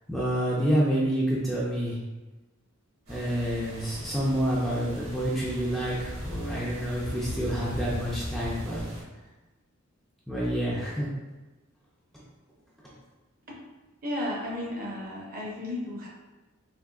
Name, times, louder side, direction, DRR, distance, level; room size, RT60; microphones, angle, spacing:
voice 1, 0.1-2.0 3.1-8.9 10.3-11.1 12.1-12.2, equal, ahead, -7 dB, 0.4 m, -28 dB
sound 1, 3.1-9.0, left 1 dB, 65° right, 1.5 m, -38 dB
voice 2, 14.0-16.1, left 1 dB, 40° right, -3 dB, 0.8 m, -33 dB
3.6 x 2.7 x 2.3 m, 1.1 s
head